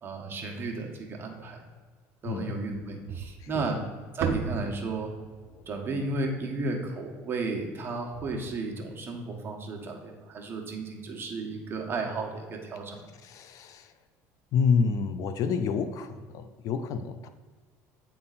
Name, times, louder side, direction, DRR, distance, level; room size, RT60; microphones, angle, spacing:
voice 1, 0.0-1.6 2.2-3.8 4.1-5.1 5.7-13.0, right 3 dB, 35° right, 1 dB, 1.3 m, -33 dB
voice 2, 2.3-2.6 3.5-3.7 13.2-13.9 14.5-17.3, left 5 dB, 55° left, 10 dB, 0.5 m, -28 dB
sound 1, 3.1-7.4, right 6 dB, 65° right, 0.7 m, -36 dB
8.6 x 3.8 x 4.1 m, 1.5 s
supercardioid pair, 110°, 7 cm